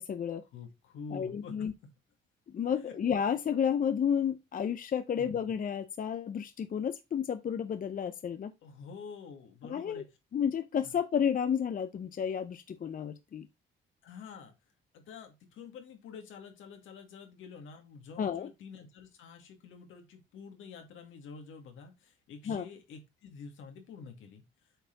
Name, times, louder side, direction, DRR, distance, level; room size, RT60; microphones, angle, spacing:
voice 1, 0.0-0.4 1.1-1.7 2.5-8.5 9.6-10.0 10.3-13.5 18.2-18.5 22.5-22.7, left 8 dB, 45° left, 0.7 m, -31 dB
voice 2, 0.5-1.5 2.7-3.0 5.2-5.4 8.6-10.0 10.8-10.9 14.0-14.5 14.9-24.4, left 5 dB, 80° left, 2.3 m, -48 dB
8.0 x 4.2 x 4.0 m
cardioid pair, 90°, 20 cm